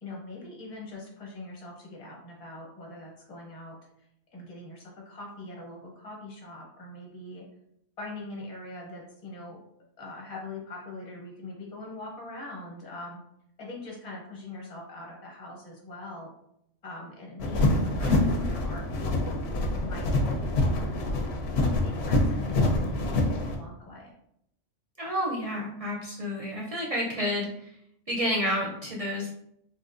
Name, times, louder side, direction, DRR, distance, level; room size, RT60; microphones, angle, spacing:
voice 1, 0.0-7.5 8.0-9.6 10.0-13.2 13.6-16.3 16.8-19.4 19.8-21.0 21.4-24.1, left 2 dB, 30° left, -2 dB, 0.8 m, -42 dB
sound 1, 17.4-23.6, left 2 dB, 65° left, 0.8 m, -26 dB
voice 2, 18.0-18.5 25.0-27.7 28.1-29.3, equal, 45° right, -3 dB, 0.5 m, -30 dB
3.6 x 2.4 x 2.5 m, 0.74 s
omnidirectional pair, 1.3 m